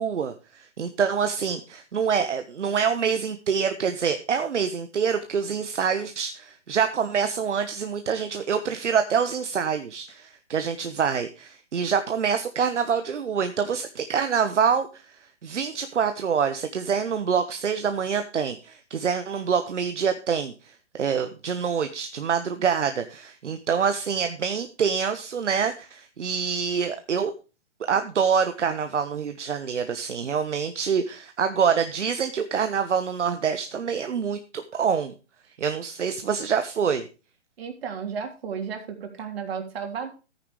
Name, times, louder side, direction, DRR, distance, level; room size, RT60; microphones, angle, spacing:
voice 1, 0.0-15.0 15.4-27.3 27.9-35.1 35.6-37.1, right 6 dB, 75° right, 9 dB, 1.2 m, -26 dB
voice 2, 37.6-40.1, right 6 dB, 55° right, 4 dB, 3.4 m, -33 dB
14.5 x 9.4 x 3.1 m, 0.32 s
hypercardioid pair, 140°, 36 cm